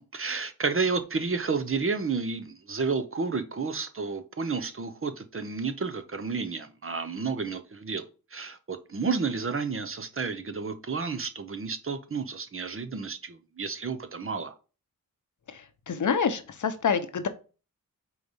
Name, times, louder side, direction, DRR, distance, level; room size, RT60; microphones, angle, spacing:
voice 1, 0.0-8.0 8.3-14.5, right 4 dB, 35° right, 0.7 m, -31 dB
voice 2, 15.5-17.3, left 6 dB, 55° left, 0.7 m, -27 dB
4.6 x 4.0 x 5.3 m
wide cardioid pair, 85°, 36 cm